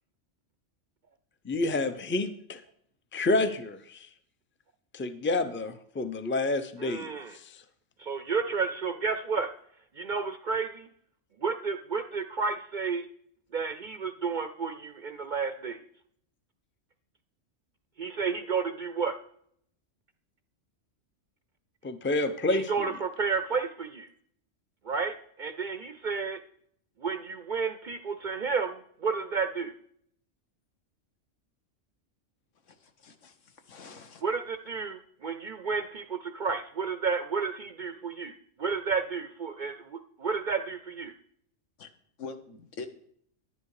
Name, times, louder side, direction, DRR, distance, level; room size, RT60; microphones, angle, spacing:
voice 1, 1.4-2.6 3.1-4.1 4.9-7.6 21.8-22.9, left 2 dB, 15° left, 10 dB, 0.5 m, -29 dB
voice 2, 6.8-7.3 8.0-9.5 10.0-10.9 11.4-13.1 13.5-15.8 18.0-19.2 22.5-24.1 24.9-26.4 27.0-29.7 34.2-38.3 38.6-41.1, right 5 dB, 55° right, 9 dB, 0.6 m, -31 dB
voice 3, 32.7-34.2 41.8-41.9 42.2-42.9, left 4 dB, 75° left, 7 dB, 1.5 m, -44 dB
11.0 x 10.0 x 4.8 m, 0.67 s
omnidirectional pair, 1.3 m